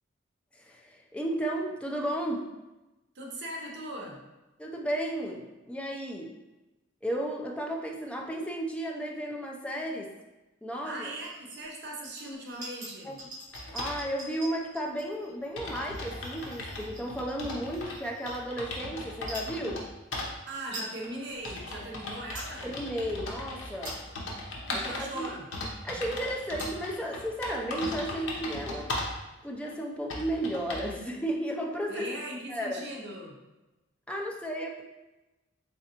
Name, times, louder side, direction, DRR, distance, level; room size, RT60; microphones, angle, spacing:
voice 1, 0.5-2.5 4.6-6.3 7.0-10.1 10.6-11.1 13.0-13.2 13.7-19.9 22.6-24.0 24.7-25.3 25.8-28.9 29.4-32.1 32.5-32.8 34.1-34.8, right 1 dB, 5° left, 0 dB, 0.4 m, -34 dB
voice 2, 3.1-4.2 10.8-13.2 20.5-22.7 24.7-25.5 31.9-33.4, right 1 dB, 60° right, -1 dB, 0.7 m, -39 dB
sound 1, 11.1-11.6 12.0-18.7 19.2-19.5 20.2-20.3 20.5-20.9 21.4-21.5 22.0-22.5 23.0-23.2 23.6-24.3 24.9-25.0 25.5-25.8 26.3-26.4 26.5-27.0 27.2-27.3 27.5-28.2, right 1 dB, 45° right, 1.2 m, -45 dB
sound 2, 13.5-14.0 14.9-15.0 15.2-15.3 15.6-18.0 18.3-19.8 20.1-20.3 21.0-29.2 29.7-29.8 30.1-30.9, left 2 dB, 75° left, 0.8 m, -37 dB
3.8 x 3.3 x 2.8 m, 1.0 s
head